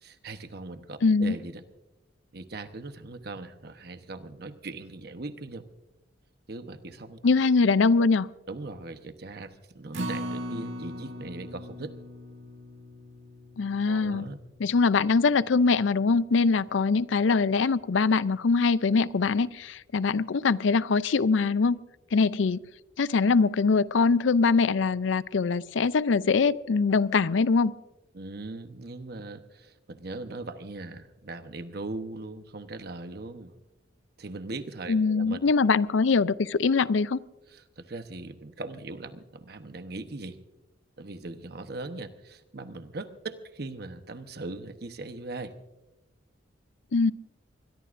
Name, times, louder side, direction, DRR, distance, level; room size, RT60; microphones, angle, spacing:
voice 1, 0.0-1.6 2.3-5.7 6.5-7.8 8.5-11.9 13.8-14.4 28.1-33.5 34.2-35.4 35.7-35.8 37.5-40.4 41.0-45.5, right 2 dB, 55° right, 1.0 m, -40 dB
voice 2, 1.0-1.3 7.2-8.3 13.6-14.3 14.6-21.8 22.1-22.6 23.0-27.7 34.9-37.2 46.9-47.1, left 4 dB, 80° left, 0.5 m, -23 dB
Acoustic guitar, 9.9-16.2 16.6-16.7 17.2-17.3, equal, 75° right, 1.8 m, -40 dB
23.0 x 21.0 x 2.6 m
head